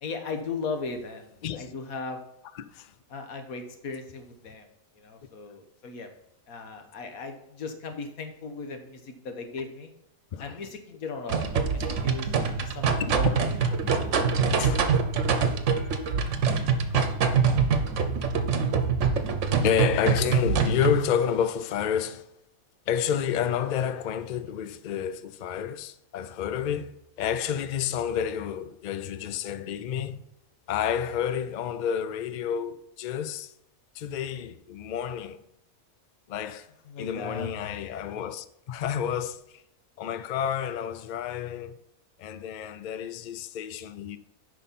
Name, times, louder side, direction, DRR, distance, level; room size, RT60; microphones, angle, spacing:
voice 1, 0.0-2.2 3.1-4.7 5.0-6.1 6.5-9.9 10.4-12.3 12.6-12.9 13.1-13.4 14.0-14.1 36.9-37.5, left 4 dB, 90° left, 1.6 m, -37 dB
voice 2, 1.4-1.7 2.5-2.9 10.3-10.6 12.3-12.4 13.0-13.2 14.6-14.9 19.6-22.3 22.9-26.9 27.2-30.2 30.7-33.5 33.9-35.4 36.3-36.7 37.0-39.4 40.0-41.8 42.2-44.2, left 8 dB, 75° left, 0.4 m, -30 dB
sound 1, 11.3-21.0, right 5 dB, 60° right, 1.1 m, -24 dB
9.3 x 5.6 x 4.2 m
omnidirectional pair, 1.5 m